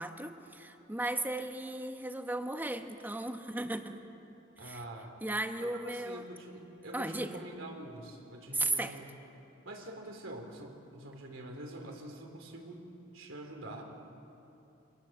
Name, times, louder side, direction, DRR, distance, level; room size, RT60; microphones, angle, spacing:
voice 1, 0.0-4.0 4.6-4.8 5.2-6.2 6.9-7.4 8.5-9.0, right 2 dB, 10° right, 6 dB, 1.1 m, -35 dB
voice 2, 4.6-5.1 5.6-9.1 9.7-12.9 13.1-13.8, right 1 dB, 75° right, 2 dB, 3.6 m, -45 dB
25.5 x 19.5 x 7.5 m, 2.9 s
head